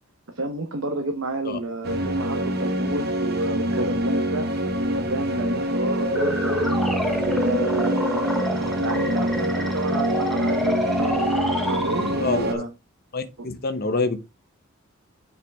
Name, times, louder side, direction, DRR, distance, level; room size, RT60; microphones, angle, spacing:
voice 1, 0.3-4.5 4.9-6.8 7.2-12.7 13.4-13.5, right 2 dB, 80° right, 1.1 m, -30 dB
sound 1, 1.8-12.5, right 1 dB, 50° right, 1.1 m, -25 dB
sound 2, 6.0-12.5, left 1 dB, ahead, 1.0 m, -28 dB
voice 2, 12.2-12.6 13.1-14.2, left 3 dB, 45° left, 1.0 m, -26 dB
7.3 x 5.6 x 3.6 m
head